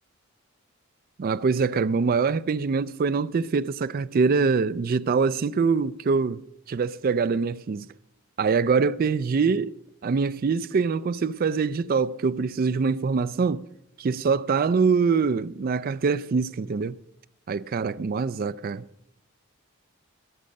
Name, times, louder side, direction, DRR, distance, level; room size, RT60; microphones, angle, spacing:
voice 1, 1.2-6.4 6.7-7.9 8.4-9.7 10.0-13.7 14.0-17.0 17.5-18.8, right 5 dB, 45° right, 0.4 m, -24 dB
20.0 x 7.5 x 5.3 m
head